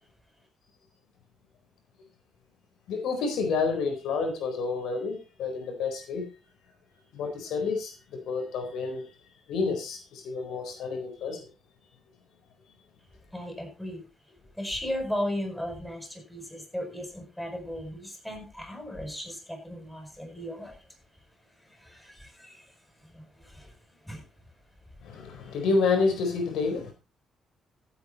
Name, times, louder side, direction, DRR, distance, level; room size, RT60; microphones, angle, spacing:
voice 1, 2.9-6.3 7.1-9.0 9.5-11.4 25.0-26.9, left 4 dB, 80° left, 5 dB, 4.2 m, -29 dB
voice 2, 13.3-14.1 14.6-20.8 21.6-22.7 23.0-23.7 24.0-24.2, equal, 5° left, 3 dB, 7.4 m, -36 dB
15.0 x 8.9 x 4.3 m, 0.30 s
cardioid pair, 90°, 0 cm